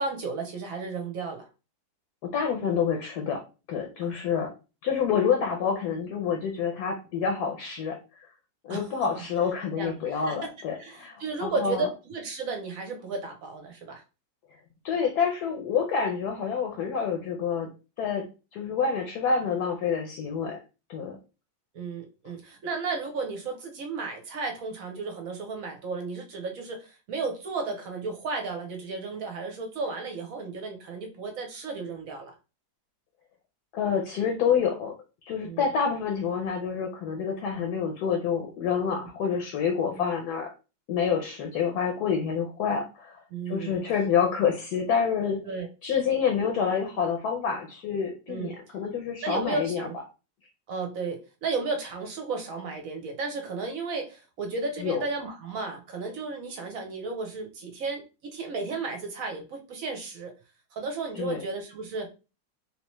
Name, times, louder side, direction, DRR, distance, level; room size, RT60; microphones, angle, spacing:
voice 1, 0.0-1.5 4.0-4.1 8.7-9.2 9.8-10.5 10.8-14.0 21.7-32.3 35.4-35.6 37.5-37.6 39.8-40.0 43.3-43.9 45.5-45.7 48.3-48.6 49.2-50.0 50.7-60.3 60.7-62.1, right 4 dB, 60° right, 3 dB, 1.0 m, -34 dB
voice 2, 2.2-3.4 3.7-4.5 4.8-8.0 8.7-11.9 14.8-17.7 18.0-18.2 18.5-20.6 20.9-21.2 33.7-34.9 35.2-40.5 40.9-43.2 43.5-45.4 45.8-49.9 54.8-55.0 61.2-61.4, left 6 dB, 65° left, 3 dB, 1.1 m, -27 dB
3.4 x 2.9 x 3.0 m, 0.30 s
omnidirectional pair, 2.0 m